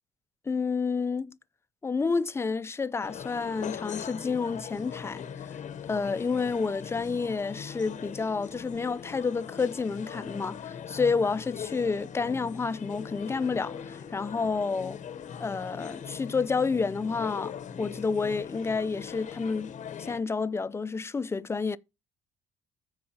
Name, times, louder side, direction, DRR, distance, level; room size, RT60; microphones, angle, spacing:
voice 1, 0.5-1.4 1.8-5.2 5.9-15.0 15.4-17.5 17.8-19.7 20.0-21.8, left 4 dB, 15° left, 0.4 m, -29 dB
sound 1, 3.0-20.2, left 8 dB, 45° left, 0.8 m, -41 dB
14.0 x 4.8 x 2.8 m
cardioid pair, 110°, 17 cm